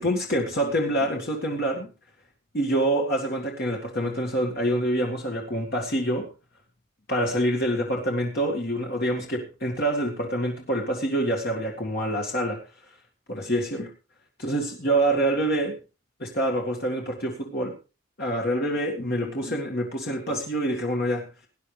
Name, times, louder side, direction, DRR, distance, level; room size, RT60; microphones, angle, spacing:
voice 1, 0.0-1.9 2.5-6.3 7.1-12.6 13.3-13.9 14.4-15.8 16.2-17.7 18.2-21.3, right 1 dB, 45° left, 0 dB, 1.9 m, -26 dB
18.5 x 10.5 x 3.3 m, 0.32 s
head